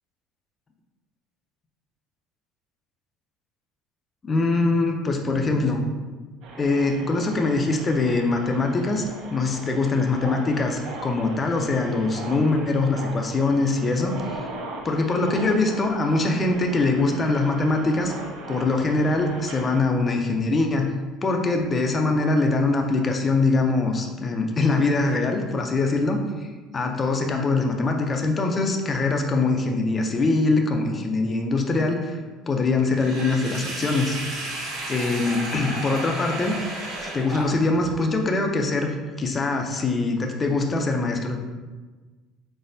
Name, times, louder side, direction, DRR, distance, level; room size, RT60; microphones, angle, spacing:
voice 1, 4.2-5.9 6.6-14.2 14.8-18.1 18.5-20.9 21.2-26.2 26.7-32.2 32.5-34.2 34.5-36.5 37.0-41.4, left 3 dB, 20° left, 3 dB, 0.4 m, -23 dB
sound 1, 6.4-19.8, right 2 dB, 60° right, 0.8 m, -39 dB
Sink (filling or washing), 32.9-37.9, right 2 dB, 90° right, 1.4 m, -33 dB
4.1 x 4.0 x 2.6 m, 1.3 s
cardioid pair, 155°, 0 cm